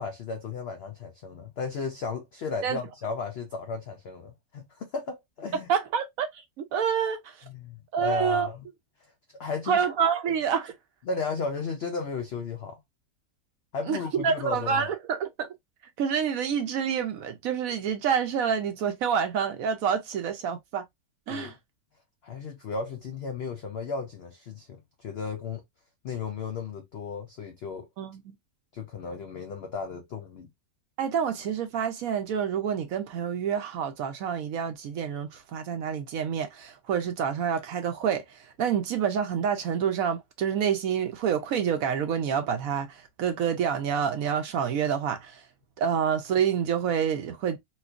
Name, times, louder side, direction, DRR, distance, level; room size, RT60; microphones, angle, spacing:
voice 1, 0.0-5.7 7.4-8.7 9.3-9.8 11.1-12.8 13.7-14.9 21.3-21.5 22.2-25.6 26.0-27.9 28.7-30.5, left 4 dB, 85° left, 0.5 m, -34 dB
voice 2, 5.7-6.3 6.6-7.3 7.9-8.5 9.7-10.7 13.9-14.0 14.2-15.5 16.0-20.9 21.3-21.5 28.0-28.3 31.0-45.4 45.8-47.6, right 7 dB, 70° right, 1.0 m, -28 dB
4.2 x 2.3 x 2.4 m
omnidirectional pair, 1.7 m